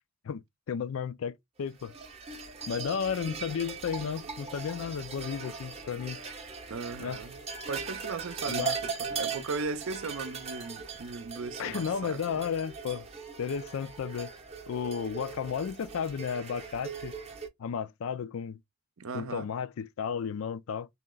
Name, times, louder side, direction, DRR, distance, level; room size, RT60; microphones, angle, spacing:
voice 1, 0.2-1.9 2.7-6.2 7.0-7.2 8.5-8.8 11.6-13.1 13.4-14.3 14.7-17.2 17.6-18.6 19.1-20.9, left 7 dB, 75° left, 0.4 m, -33 dB
sound 1, 1.8-17.5, right 5 dB, 30° right, 0.6 m, -39 dB
voice 2, 6.7-7.4 7.7-12.2 19.0-19.5, right 4 dB, 75° right, 0.6 m, -37 dB
3.1 x 2.9 x 3.7 m
head